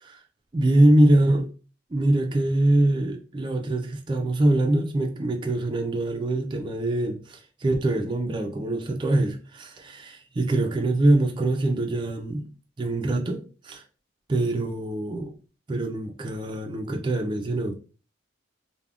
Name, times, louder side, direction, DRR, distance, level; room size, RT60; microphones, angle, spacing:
voice 1, 0.5-1.5 1.9-12.5 12.8-13.8 14.3-15.3 15.7-17.7, right 1 dB, 25° right, 0.3 m, -23 dB
2.3 x 2.1 x 3.4 m
head